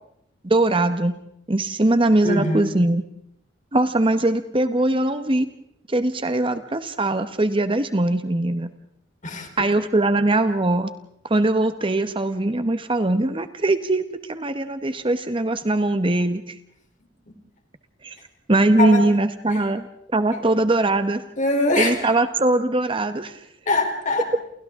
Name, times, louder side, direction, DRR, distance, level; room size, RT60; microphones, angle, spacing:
voice 1, 0.4-1.2 1.5-3.0 3.7-5.5 5.9-8.7 9.6-10.9 11.2-16.5 18.0-18.2 18.5-21.2 21.8-23.4, right 2 dB, 30° right, 10 dB, 1.1 m, -21 dB
voice 2, 2.2-2.7 9.2-9.7 17.3-17.4 18.8-19.0 19.5-19.6 21.4-22.0 23.7-24.3, left 2 dB, 40° left, 4 dB, 3.6 m, -23 dB
29.0 x 29.0 x 3.7 m, 0.74 s
head